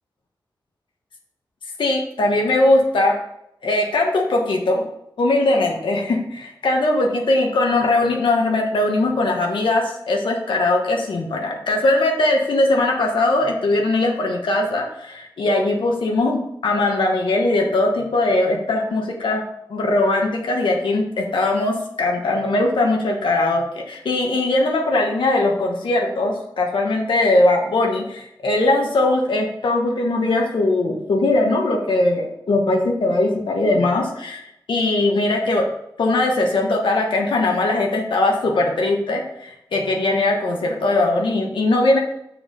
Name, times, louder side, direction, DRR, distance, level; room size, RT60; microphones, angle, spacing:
voice 1, 1.8-3.1 3.6-4.8 5.2-19.4 19.7-34.4 34.7-35.6 36.0-42.0, left 2 dB, 90° left, 0 dB, 1.3 m, -20 dB
7.1 x 4.8 x 5.3 m, 0.79 s
wide cardioid pair, 145°, 8 cm